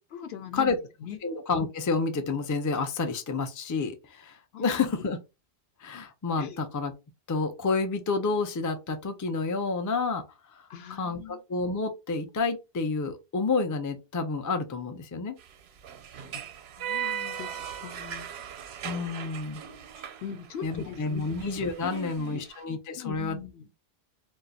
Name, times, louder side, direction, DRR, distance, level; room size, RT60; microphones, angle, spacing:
voice 1, 0.1-1.2 4.5-4.9 6.4-6.6 10.7-11.4 16.3-16.4 16.8-18.3 19.9-21.2 21.8-22.4 22.9-23.7, left 8 dB, 75° left, 0.8 m, -41 dB
voice 2, 1.2-5.2 5.8-6.9 7.3-10.2 10.6-10.7 11.0-15.4 18.8-19.6 20.6-23.4, left 4 dB, 30° left, 0.3 m, -29 dB
sound 1, 15.4-22.6, right 9 dB, 80° right, 0.8 m, -38 dB
2.4 x 2.3 x 3.9 m
omnidirectional pair, 1.1 m